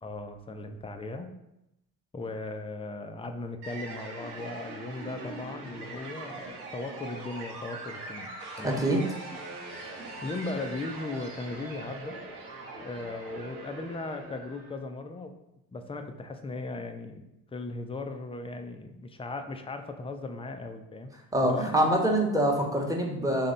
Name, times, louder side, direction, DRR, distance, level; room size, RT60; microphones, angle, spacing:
voice 1, 0.0-1.3 2.1-8.8 10.2-12.2 12.8-15.3 15.7-17.2 17.5-21.1 21.4-21.9, left 2 dB, 10° left, 6 dB, 0.5 m, -37 dB
sound 1, 3.6-14.8, right 2 dB, 80° right, 0.9 m, -42 dB
voice 2, 8.6-9.0 21.3-23.5, right 1 dB, 10° right, 0 dB, 1.1 m, -25 dB
4.0 x 3.3 x 3.9 m, 0.87 s
hypercardioid pair, 50°, 45 cm